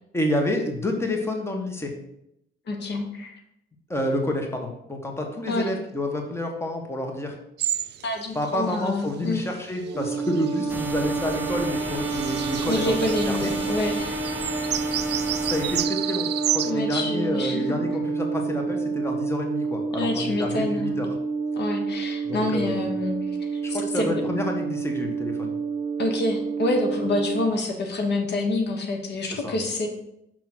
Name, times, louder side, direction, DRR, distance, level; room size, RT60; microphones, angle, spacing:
voice 1, 0.1-1.9 3.9-7.4 8.3-13.0 13.3-13.5 15.4-21.1 22.2-22.9 23.6-25.6 29.3-29.6, left 1 dB, 15° left, 2 dB, 1.3 m, -29 dB
voice 2, 2.7-3.4 5.5-5.7 8.0-9.4 12.7-14.1 16.6-17.6 20.0-20.9 21.5-24.2 26.0-29.9, left 2 dB, 60° left, 3 dB, 1.3 m, -27 dB
sound 1, 7.6-8.0 8.4-8.5 9.2-13.6 14.0-14.1 14.2-16.7, right 12 dB, 60° right, 0.4 m, -31 dB
sound 2, 9.8-27.5, right 4 dB, 25° right, 1.1 m, -29 dB
sound 3, 10.7-15.9, right 2 dB, 10° right, 0.6 m, -36 dB
6.0 x 3.7 x 6.1 m, 0.80 s
cardioid pair, 90°, 20 cm